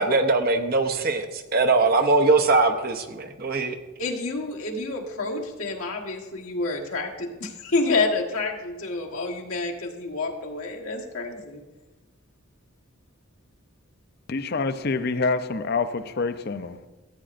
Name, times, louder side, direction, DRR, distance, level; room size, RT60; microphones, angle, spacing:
voice 1, 0.0-3.8, right 3 dB, 45° right, 7 dB, 0.6 m, -21 dB
voice 2, 4.0-11.6, left 3 dB, 80° left, 0 dB, 1.4 m, -28 dB
voice 3, 14.3-16.8, left 4 dB, 45° left, 11 dB, 0.5 m, -26 dB
14.0 x 8.9 x 2.5 m, 1.2 s
head